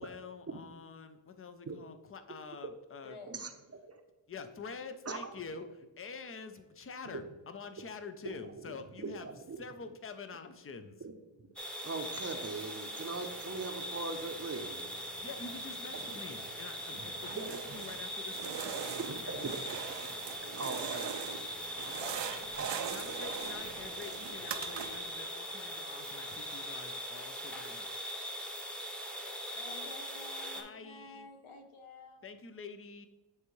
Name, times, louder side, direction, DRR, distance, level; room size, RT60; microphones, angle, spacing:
voice 1, 0.0-3.2 4.3-9.3 9.6-11.0 15.2-19.3 19.7-19.8 21.8-22.5 22.9-28.1 30.6-31.3 32.2-33.1, left 4 dB, 25° left, 9 dB, 0.6 m, -47 dB
voice 2, 3.0-3.4 29.5-32.2, left 3 dB, 75° left, 5 dB, 1.1 m, -51 dB
voice 3, 8.2-9.6 11.0-11.1 11.8-14.8 15.9-16.2 16.9-17.0 17.3-17.6 19.0-19.8 20.5-21.5 22.6-22.7, right 3 dB, 30° right, 6 dB, 0.8 m, -41 dB
sound 1, 11.6-30.6, equal, ahead, 1.0 m, -41 dB
sound 2, 13.1-25.0, right 6 dB, 85° right, 1.0 m, -57 dB
sound 3, 17.1-18.0 18.3-21.5 21.8-25.2, right 8 dB, 60° right, 0.7 m, -41 dB
9.4 x 3.5 x 3.2 m, 1.1 s
cardioid pair, 70°, 49 cm